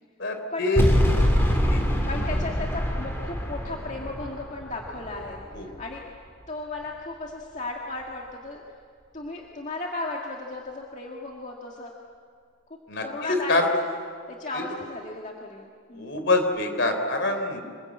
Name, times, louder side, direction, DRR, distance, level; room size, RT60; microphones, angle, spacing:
voice 1, 0.2-0.9 1.7-1.8 5.5-5.7 12.9-13.7 14.5-14.6 15.9-17.6, left 2 dB, 55° left, 6 dB, 3.7 m, -25 dB
sound 1, 0.8-5.9, equal, 10° left, 3.3 m, -25 dB
voice 2, 2.1-6.0 6.5-8.6 9.1-11.9 13.0-13.6 14.3-16.2, left 2 dB, 35° left, -1 dB, 2.0 m, -35 dB
26.0 x 21.5 x 8.6 m, 2.1 s
head